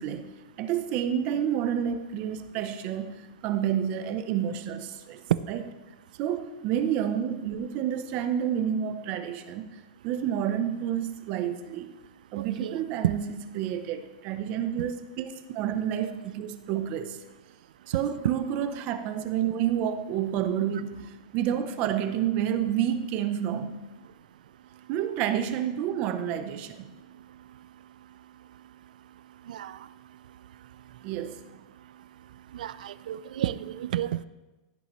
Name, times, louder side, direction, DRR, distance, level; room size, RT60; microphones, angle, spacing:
voice 1, 0.0-5.2 5.5-5.6 6.2-11.9 12.3-17.2 17.9-23.8 24.9-26.9 31.0-31.4, right 9 dB, 35° right, 0.6 m, -29 dB
voice 2, 12.4-12.8 13.0-13.1 18.2-18.3 29.5-29.8 32.5-34.2, right 12 dB, 80° right, 0.4 m, -29 dB
15.0 x 6.9 x 3.1 m
supercardioid pair, 160°, 4 cm